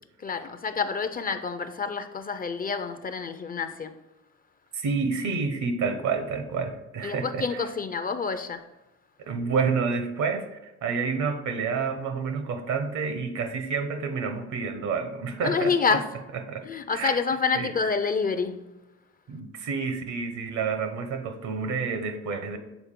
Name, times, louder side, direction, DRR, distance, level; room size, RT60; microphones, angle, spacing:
voice 1, 0.2-3.9 7.0-8.6 15.4-16.1 16.6-18.7, left 5 dB, 30° left, 0.4 m, -28 dB
voice 2, 4.7-7.7 9.2-16.0 16.5-16.6 16.9-17.2 17.5-17.7 19.3-22.6, right 5 dB, 70° right, 0.9 m, -29 dB
7.0 x 4.0 x 3.7 m
cardioid pair, 90°, 30 cm